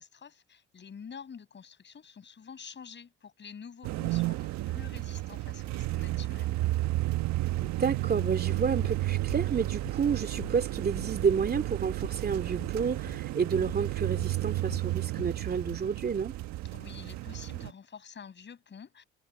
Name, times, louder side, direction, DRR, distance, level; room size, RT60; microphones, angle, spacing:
voice 1, 0.0-6.6 16.7-19.0, left 6 dB, 40° left, 7.3 m, -48 dB
sound 1, 3.8-17.7, right 16 dB, 70° right, 1.5 m, -32 dB
voice 2, 7.6-16.3, right 6 dB, 35° right, 2.6 m, -30 dB
sound 2, 8.2-8.4 8.8-9.0 9.3-10.1 10.4-12.2 12.5-12.8 13.1-13.3 13.7-13.9 14.2-15.9, left 11 dB, 55° left, 5.3 m, -46 dB
supercardioid pair, 80°, 29 cm